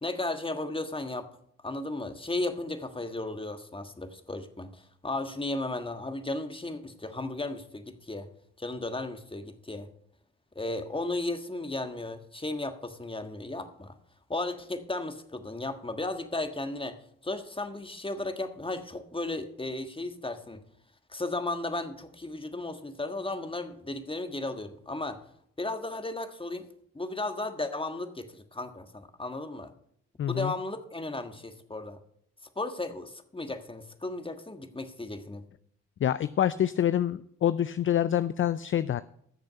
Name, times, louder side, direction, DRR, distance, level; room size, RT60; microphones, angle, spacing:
voice 1, 0.0-1.3 1.6-8.3 8.6-9.9 10.5-13.9 14.3-17.0 17.2-20.6 21.1-25.2 25.6-26.7 26.9-29.7 30.3-32.0 32.5-35.4, left 2 dB, 15° left, 8 dB, 1.5 m, -35 dB
voice 2, 30.2-30.5 36.0-39.0, left 10 dB, 45° left, 15 dB, 0.4 m, -26 dB
14.0 x 6.8 x 5.3 m, 0.68 s
hypercardioid pair, 40°, 30 cm